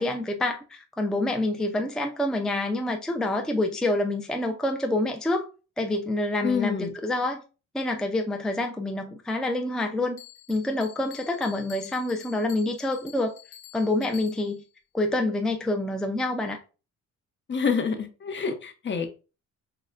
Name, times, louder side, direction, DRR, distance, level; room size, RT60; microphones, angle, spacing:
voice 1, 0.0-5.5 5.8-7.4 7.7-10.2 10.5-13.4 13.7-14.6 14.9-16.6, left 2 dB, ahead, 0.4 m, -27 dB
voice 2, 6.4-6.9 17.5-19.1, left 5 dB, 40° left, 0.7 m, -27 dB
Bell, 10.2-14.7, left 13 dB, 85° left, 0.9 m, -48 dB
6.3 x 2.2 x 2.5 m
cardioid pair, 90°, 30 cm